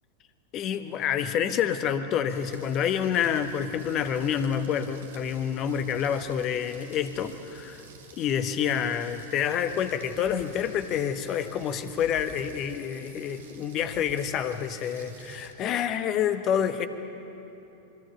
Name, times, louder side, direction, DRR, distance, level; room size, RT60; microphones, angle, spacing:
voice 1, 0.5-7.8 8.2-16.9, left 8 dB, 35° left, 10 dB, 1.2 m, -28 dB
Rain, 2.3-15.5, right 4 dB, 60° right, 1.9 m, -50 dB
25.0 x 23.0 x 5.8 m, 3.0 s
figure-of-eight pair, 90°, 0 cm